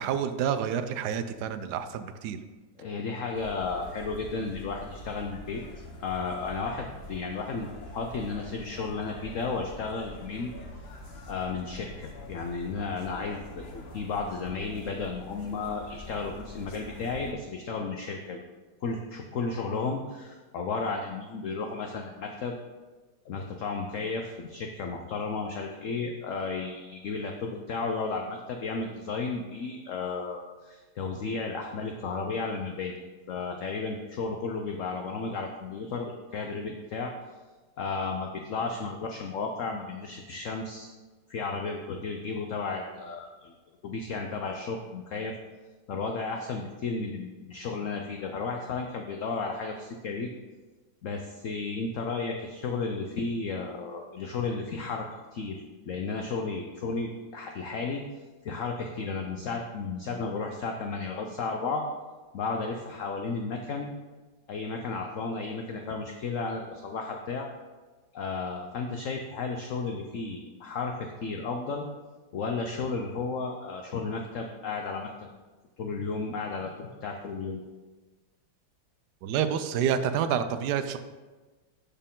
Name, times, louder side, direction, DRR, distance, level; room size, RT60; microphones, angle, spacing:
voice 1, 0.0-2.4 79.2-81.0, right 8 dB, 70° right, 10 dB, 1.0 m, -28 dB
voice 2, 2.8-5.6 6.0-10.5 11.3-18.4 18.8-22.6 23.3-33.0 33.3-37.1 37.8-40.9 41.3-43.5 43.8-45.3 45.9-50.3 51.0-58.0 58.4-61.8 62.3-63.9 64.5-67.5 68.1-71.9 72.3-75.1 75.8-77.6, left 4 dB, 70° left, 3 dB, 0.7 m, -33 dB
sound 1, 3.3-17.3, left 1 dB, 45° left, 0.9 m, -45 dB
12.0 x 4.5 x 3.7 m, 1.3 s
omnidirectional pair, 2.1 m